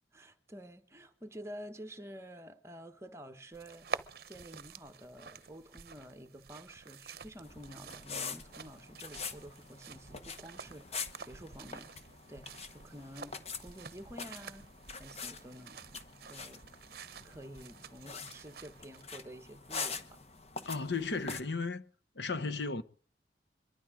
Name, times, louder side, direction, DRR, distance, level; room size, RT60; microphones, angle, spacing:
voice 1, 0.1-3.9 4.3-11.9 12.3-14.7 15.0-15.8 16.3-16.7 17.2-20.2, equal, 15° right, 1.2 m, -50 dB
sound 1, 3.5-19.0, right 5 dB, 60° right, 0.8 m, -48 dB
sound 2, 7.4-21.4, left 5 dB, 35° left, 1.1 m, -45 dB
voice 2, 20.7-21.8 22.2-22.8, left 4 dB, 85° left, 1.1 m, -34 dB
23.0 x 12.5 x 5.0 m
head